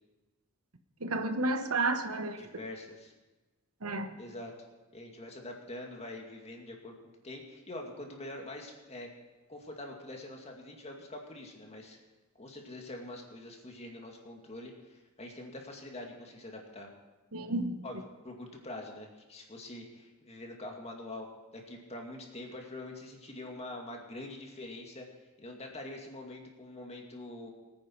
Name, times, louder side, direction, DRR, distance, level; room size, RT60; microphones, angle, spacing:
voice 1, 1.0-2.4 3.8-4.2 17.3-17.8, right 2 dB, 85° right, 7 dB, 1.2 m, -31 dB
voice 2, 2.4-3.1 4.2-4.5 4.9-6.9 7.2-9.1 9.5-12.0 12.4-16.9 17.8-18.0 18.2-21.3 21.5-25.0 25.4-27.5, left 1 dB, 30° left, 1 dB, 2.3 m, -44 dB
22.5 x 9.5 x 4.7 m, 1.2 s
head